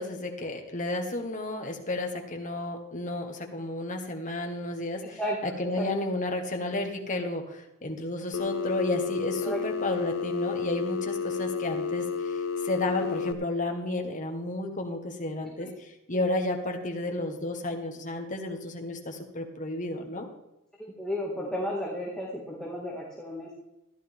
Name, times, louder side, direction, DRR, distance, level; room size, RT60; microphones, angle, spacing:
voice 1, 0.0-20.3, left 2 dB, 40° left, 3 dB, 1.6 m, -32 dB
Telephone, 8.3-13.3, left 5 dB, 70° left, 0.6 m, -31 dB
voice 2, 21.0-23.5, equal, 5° left, -4 dB, 2.0 m, -33 dB
14.5 x 11.5 x 3.6 m, 0.91 s
head